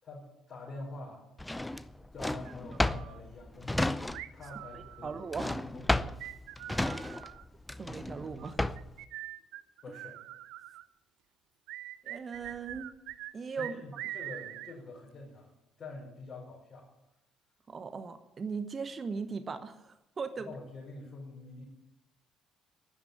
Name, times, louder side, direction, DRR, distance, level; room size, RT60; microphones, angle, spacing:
voice 1, 0.0-1.2 2.1-4.1 4.3-6.1 9.8-10.1 13.5-15.5 15.8-16.9 20.5-21.6, left 2 dB, 40° left, -4 dB, 5.6 m, -46 dB
Drawer open or close, 1.4-4.5 4.8-9.0, left 1 dB, 10° left, 0.7 m, -33 dB
sound 1, 2.4-3.2 4.1-5.3 6.2-7.4 8.4-10.8 11.7-13.3 13.6-14.7, right 15 dB, 60° right, 0.7 m, -43 dB
voice 2, 5.0-5.5 7.8-8.6 12.0-12.9 13.3-13.8 17.7-20.5, right 5 dB, 35° right, 10 dB, 1.1 m, -38 dB
12.5 x 11.5 x 8.8 m, 0.89 s
figure-of-eight pair, 50°, 0 cm